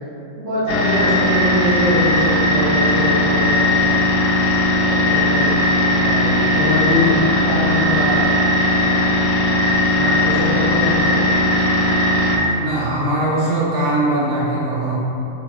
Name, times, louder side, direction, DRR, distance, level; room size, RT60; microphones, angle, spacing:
voice 1, 0.4-3.8 4.9-5.6 6.0-8.3 8.8-9.0 9.9-11.1, left 1 dB, 55° right, -11 dB, 0.6 m, -23 dB
sound 1, 0.7-12.4, left 1 dB, 90° left, 1.3 m, -17 dB
voice 2, 12.6-15.0, right 1 dB, 70° right, -8 dB, 1.2 m, -20 dB
4.3 x 2.7 x 2.3 m, 2.8 s
omnidirectional pair, 1.9 m